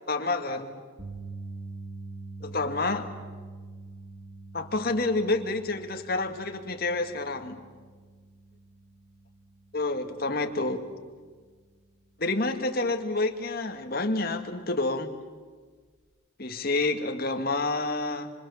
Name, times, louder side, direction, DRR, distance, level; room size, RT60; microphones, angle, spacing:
voice 1, 0.1-0.8 2.4-3.1 4.5-7.6 9.7-10.8 12.2-15.1 16.4-18.3, left 2 dB, 50° left, 5 dB, 2.1 m, -28 dB
sound 1, 1.0-13.2 13.6-13.8 16.0-16.1, right 3 dB, 55° right, 4.6 m, -45 dB
26.5 x 26.0 x 7.2 m, 1.5 s
head